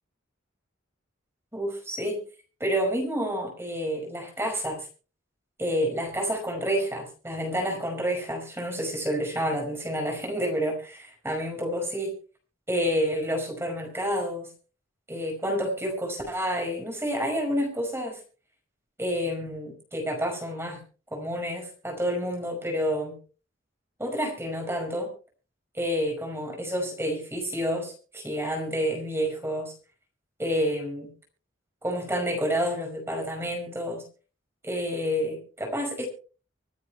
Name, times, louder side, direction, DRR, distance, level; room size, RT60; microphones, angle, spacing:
voice 1, 1.5-2.2 2.6-4.9 5.6-12.1 12.7-14.5 15.1-18.2 19.0-20.8 21.1-23.2 24.0-25.1 25.7-29.7 30.4-31.1 31.8-34.0 34.6-36.1, equal, 10° right, 1 dB, 5.3 m, -29 dB
25.5 x 9.3 x 3.3 m, 0.37 s
head